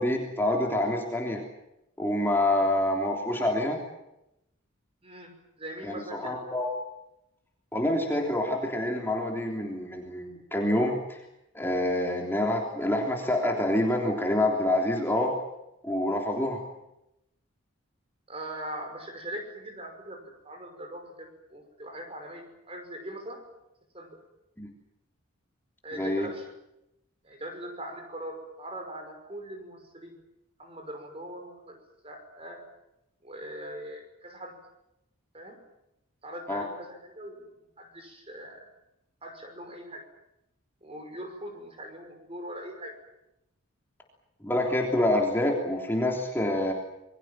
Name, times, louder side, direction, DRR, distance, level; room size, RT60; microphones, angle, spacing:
voice 1, 0.0-1.4 2.0-3.8 5.8-6.7 7.7-11.2 11.5-15.3 15.8-16.6 24.6-24.7 26.0-26.3 36.5-36.6 44.4-46.7, left 1 dB, 10° left, 0 dB, 3.3 m, -27 dB
voice 2, 5.0-6.4 18.3-23.4 23.9-24.2 25.8-26.5 27.2-30.2 30.6-32.6 33.2-34.6 35.3-35.6 36.2-38.6 39.2-40.0 40.8-42.9, right 1 dB, 30° right, 5 dB, 5.7 m, -41 dB
27.5 x 22.5 x 7.6 m, 0.85 s
head